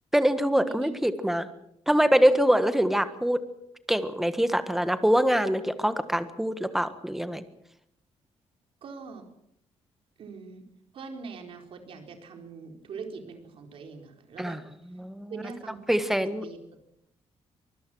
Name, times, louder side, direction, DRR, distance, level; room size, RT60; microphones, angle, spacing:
voice 1, 0.1-1.5 1.9-3.4 3.9-7.4 14.4-14.6 15.0-15.3 15.9-16.4, equal, 5° right, 10 dB, 1.5 m, -24 dB
voice 2, 8.8-9.3 10.2-10.6 10.9-14.6 15.3-16.6, right 5 dB, 60° right, 4 dB, 4.3 m, -42 dB
25.0 x 20.0 x 6.3 m, 0.76 s
cardioid pair, 155°, 11 cm